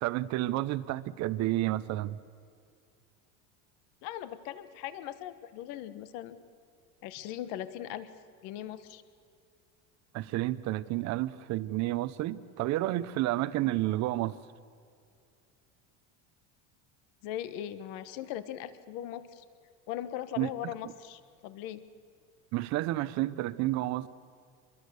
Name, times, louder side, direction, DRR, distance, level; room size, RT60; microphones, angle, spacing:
voice 1, 0.0-2.2 10.1-14.4 20.4-20.5 22.5-24.1, right 16 dB, 50° right, 0.9 m, -30 dB
voice 2, 4.0-6.4 7.0-8.1 8.4-9.0 17.2-19.4 19.9-21.8, left 11 dB, 65° left, 1.3 m, -39 dB
25.0 x 22.0 x 6.7 m
cardioid pair, 145°, 36 cm